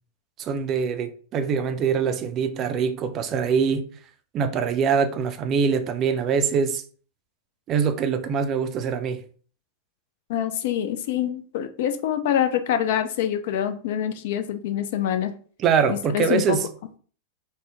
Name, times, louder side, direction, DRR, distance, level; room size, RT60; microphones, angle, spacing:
voice 1, 0.4-3.9 4.3-6.8 7.7-9.2 15.6-16.6, right 6 dB, 30° right, 0.4 m, -23 dB
voice 2, 10.3-15.4 15.9-16.6, left 10 dB, 55° left, 0.4 m, -25 dB
3.6 x 2.0 x 3.5 m
figure-of-eight pair, 90°, 0 cm